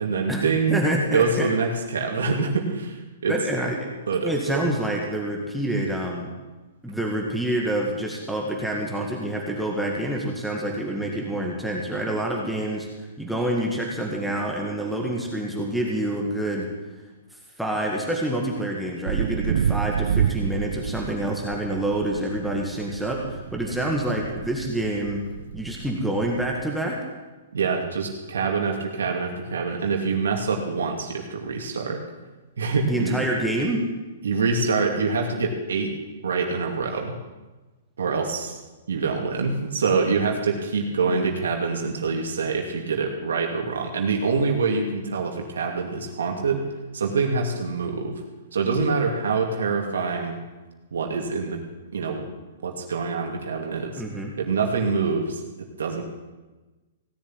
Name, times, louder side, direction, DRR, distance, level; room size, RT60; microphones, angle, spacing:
voice 1, 0.0-0.8 1.1-3.4 4.1-4.6 27.5-32.0 32.6-33.2 34.2-36.0 36.2-37.1 38.0-38.6 38.9-48.2 48.5-50.4 50.9-51.6 51.9-52.3 52.6-54.0 54.4-56.0, right 4 dB, 90° right, 1 dB, 2.6 m, -25 dB
voice 2, 0.7-1.5 3.3-3.8 4.2-6.3 6.8-12.9 13.2-16.7 17.6-25.2 25.5-27.0 32.9-33.9 54.0-54.3, right 1 dB, ahead, -2 dB, 1.9 m, -27 dB
sound 1, 19.0-26.6, right 8 dB, 70° right, 0.6 m, -29 dB
17.0 x 7.2 x 9.5 m, 1.2 s
hypercardioid pair, 145°, 0 cm